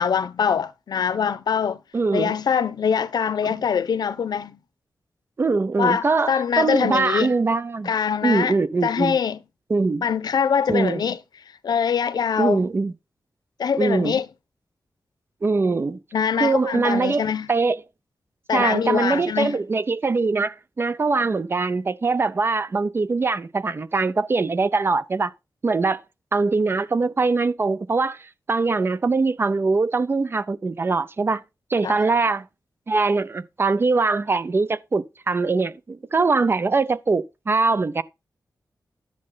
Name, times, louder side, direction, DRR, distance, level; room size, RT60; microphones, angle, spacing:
voice 1, 0.0-1.8 2.1-4.6 5.8-7.3 7.8-8.5 8.8-9.4 10.0-11.2 11.6-12.7 13.6-14.3 16.1-17.5 18.5-19.6 31.8-32.0, left 7 dB, 85° left, 0.8 m, -23 dB
voice 2, 1.9-2.4 5.4-7.9 8.2-9.2 9.7-10.0 10.7-11.0 12.4-12.9 13.8-14.1 15.4-16.0 16.4-17.8 18.5-25.3 25.6-26.0 26.3-31.4 31.7-32.5 32.9-38.0, right 4 dB, 35° right, 0.6 m, -22 dB
10.5 x 7.5 x 3.9 m
wide cardioid pair, 170°, 7 cm